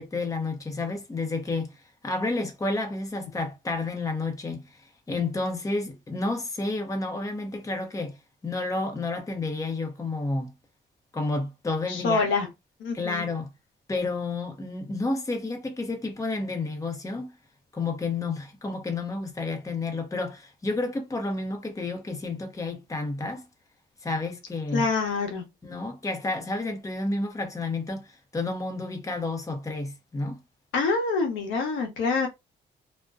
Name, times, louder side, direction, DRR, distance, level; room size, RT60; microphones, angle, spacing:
voice 1, 0.0-1.7 2.0-4.7 5.1-8.2 8.4-10.5 11.1-12.3 12.9-13.5 13.9-17.3 17.7-23.5 24.0-24.9 25.6-30.4, left 3 dB, 15° left, 0.7 m, -30 dB
voice 2, 11.9-12.5 12.8-13.3 24.7-25.4 30.7-32.3, left 4 dB, 80° left, 0.9 m, -26 dB
2.5 x 2.1 x 2.3 m
cardioid pair, 90°, 20 cm